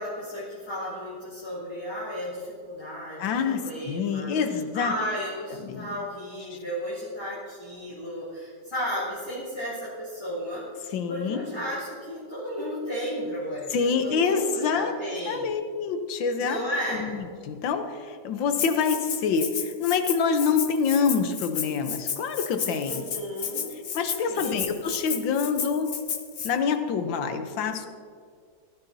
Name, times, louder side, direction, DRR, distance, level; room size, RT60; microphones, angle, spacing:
voice 1, 0.0-15.5 16.4-17.2 22.8-23.7 24.1-24.8, equal, 15° left, -11 dB, 3.1 m, -34 dB
voice 2, 3.2-4.9 5.6-5.9 6.5-6.6 10.9-11.4 13.7-14.9 15.3-16.6 17.0-23.1 23.9-25.9 26.4-27.9, left 5 dB, 90° left, 8 dB, 1.6 m, -26 dB
Rattle (instrument), 18.6-26.5, left 7 dB, 55° left, 0.7 m, -33 dB
18.0 x 11.5 x 2.7 m, 2.1 s
omnidirectional pair, 2.0 m